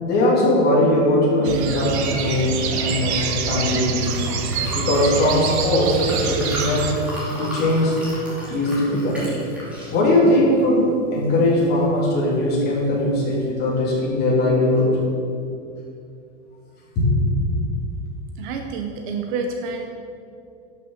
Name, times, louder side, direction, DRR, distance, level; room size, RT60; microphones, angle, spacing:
voice 1, 0.0-4.1 4.7-7.0 7.4-8.0 8.5-9.3 9.9-14.9 16.9-17.3, left 1 dB, 25° left, -5 dB, 3.0 m, -20 dB
sound 1, 1.4-6.9, right 5 dB, 55° right, 1.2 m, -25 dB
Liquid, 3.0-13.5, equal, 5° right, 2.5 m, -36 dB
voice 2, 18.4-19.9, right 4 dB, 40° right, 4 dB, 0.8 m, -28 dB
12.0 x 6.7 x 6.5 m, 2.5 s
supercardioid pair, 170°, 38 cm